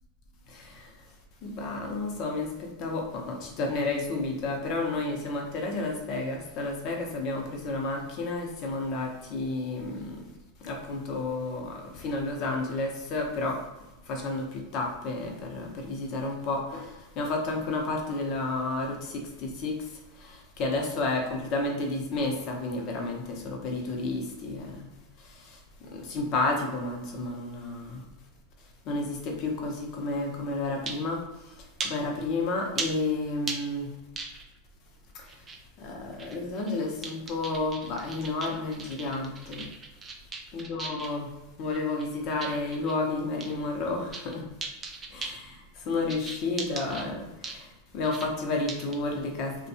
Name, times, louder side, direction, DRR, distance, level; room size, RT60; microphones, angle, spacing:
voice 1, 1.4-2.5 2.8-10.2 10.6-13.6 14.1-19.8 20.3-24.9 25.9-28.0 28.9-31.2 31.8-33.9 35.8-39.6 40.5-41.3 41.6-44.4 45.1-45.6 45.9-47.3 47.9-49.7, left 2 dB, 45° left, 1 dB, 0.7 m, -31 dB
sound 1, 30.9-31.1 31.8-31.9 32.8-32.9 33.5-33.6 34.2-34.6 35.3-35.6 36.1-36.8 37.0-41.2 41.7-42.9 43.4-43.5 43.9-44.3 44.6-45.4 46.1-47.0 47.4-47.6 48.0-48.3 48.7-48.9, right 3 dB, 20° right, 0.4 m, -37 dB
2.6 x 2.2 x 2.7 m, 1.0 s
supercardioid pair, 135°, 0 cm